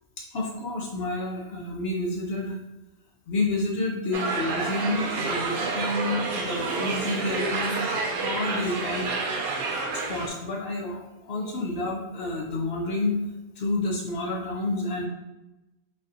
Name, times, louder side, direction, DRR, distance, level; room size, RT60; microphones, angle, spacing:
voice 1, 0.2-2.6 3.3-7.9 8.2-9.4 9.7-13.2 13.6-15.1, left 2 dB, 60° left, -2 dB, 0.7 m, -29 dB
sound 1, 4.1-10.3, right 3 dB, 85° right, 1.1 m, -29 dB
4.0 x 2.7 x 2.5 m, 1.0 s
omnidirectional pair, 1.5 m